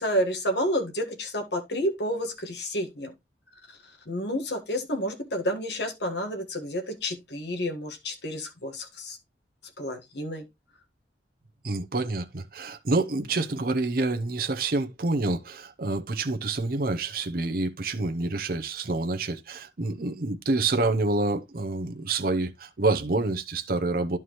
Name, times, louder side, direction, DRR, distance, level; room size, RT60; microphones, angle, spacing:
voice 1, 0.0-3.1 3.7-3.8 4.1-9.2 9.8-10.5, equal, 75° left, 1.6 m, -30 dB
voice 2, 11.6-24.2, right 3 dB, 55° right, 0.8 m, -27 dB
11.0 x 4.7 x 3.1 m
head